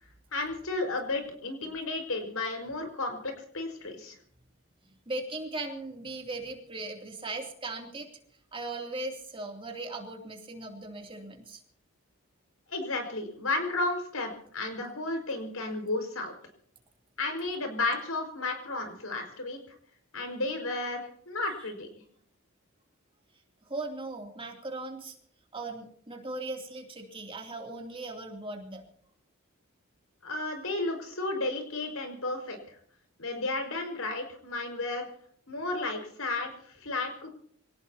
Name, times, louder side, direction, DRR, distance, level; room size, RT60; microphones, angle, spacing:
voice 1, 0.3-4.2 12.7-16.3 17.2-19.6 20.1-21.9 30.2-32.8 33.2-35.1 35.5-37.3, left 2 dB, 85° left, 5 dB, 5.3 m, -33 dB
voice 2, 5.1-8.1 8.5-11.6 23.7-25.1 25.5-28.8, right 2 dB, 25° right, 2 dB, 2.9 m, -38 dB
26.5 x 18.0 x 2.9 m, 0.63 s
head